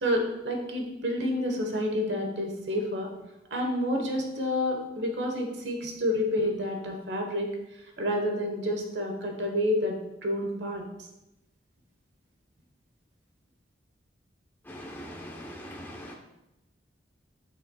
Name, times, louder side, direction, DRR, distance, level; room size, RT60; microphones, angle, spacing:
voice 1, 0.0-3.1 3.5-7.6 8.0-10.0 10.2-10.8, left 1 dB, 75° right, 2 dB, 1.2 m, -29 dB
voice 2, 14.7-16.1, equal, 10° left, -1 dB, 0.8 m, -41 dB
9.3 x 5.6 x 2.3 m, 0.91 s
head